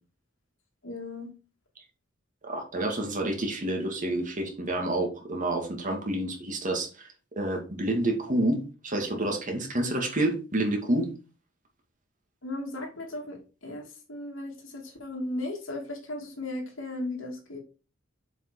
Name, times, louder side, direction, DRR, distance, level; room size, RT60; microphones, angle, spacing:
voice 1, 0.8-1.3 12.4-17.6, left 2 dB, 75° left, 1 dB, 3.0 m, -36 dB
voice 2, 2.4-7.1 7.4-11.1, right 1 dB, 40° right, 3 dB, 2.3 m, -28 dB
7.3 x 5.6 x 4.9 m, 0.33 s
head